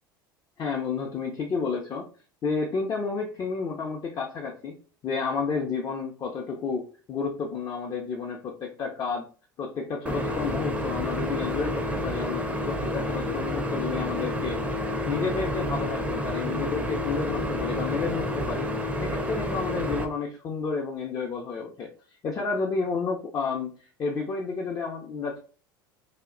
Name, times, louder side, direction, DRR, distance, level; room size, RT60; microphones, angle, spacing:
voice 1, 0.6-2.1 2.4-4.7 5.0-9.2 9.6-14.6 15.1-18.7 19.0-21.9 22.2-25.4, left 5 dB, 35° left, -1 dB, 0.6 m, -31 dB
sound 1, 10.1-20.1, left 1 dB, 10° right, 0.5 m, -29 dB
2.3 x 2.1 x 3.7 m, 0.39 s
hypercardioid pair, 75°, 12 cm